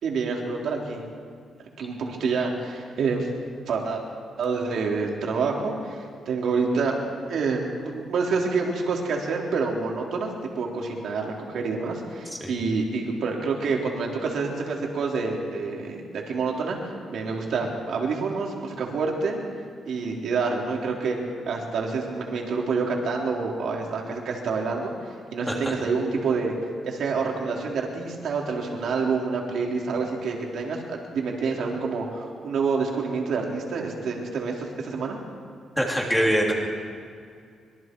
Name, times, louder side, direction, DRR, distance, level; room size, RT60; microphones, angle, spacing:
voice 1, 0.0-1.0 1.8-3.3 3.7-4.0 4.4-16.8 17.1-19.4 19.9-21.2 21.5-26.5 26.8-35.2, right 4 dB, 60° right, -1 dB, 3.7 m, -27 dB
voice 2, 35.8-36.5, equal, 5° left, -2 dB, 3.1 m, -23 dB
25.0 x 23.0 x 4.7 m, 2.2 s
wide cardioid pair, 170°, 0 cm